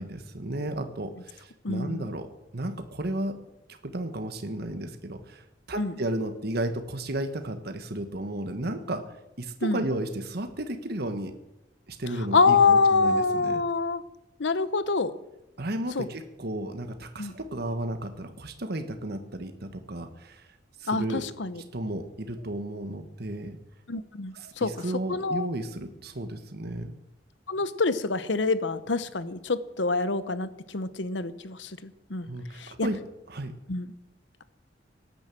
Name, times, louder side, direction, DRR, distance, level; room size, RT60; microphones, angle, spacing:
voice 1, 0.0-2.3 2.5-3.4 3.7-9.0 9.4-11.3 11.9-13.6 15.6-20.5 20.8-21.2 21.7-23.6 24.3-26.9 32.2-33.0 33.3-33.5, right 1 dB, 60° right, 7 dB, 1.4 m, -33 dB
voice 2, 1.6-2.1 5.8-6.0 9.6-9.8 12.2-14.0 14.4-15.1 15.9-16.1 17.2-17.3 20.9-21.6 23.9-24.7 25.1-25.5 27.5-32.9 33.7-33.9, left 4 dB, 80° left, 14 dB, 1.0 m, -26 dB
18.0 x 10.5 x 7.7 m, 0.91 s
head